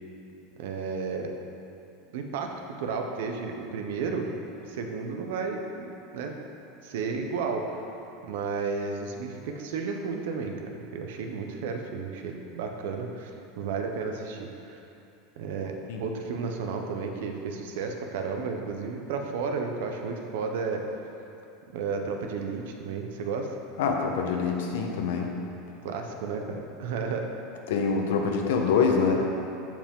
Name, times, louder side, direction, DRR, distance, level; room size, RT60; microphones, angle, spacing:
voice 1, 0.6-1.3 2.1-4.3 4.7-6.3 6.8-7.8 8.2-14.8 15.4-15.7 16.0-20.9 21.7-23.5 25.8-27.3, right 5 dB, 75° right, 3 dB, 0.9 m, -32 dB
voice 2, 23.8-25.3 27.7-29.1, left 5 dB, 85° left, 2 dB, 1.1 m, -25 dB
14.0 x 5.0 x 3.8 m, 2.8 s
supercardioid pair, 180°, 0 cm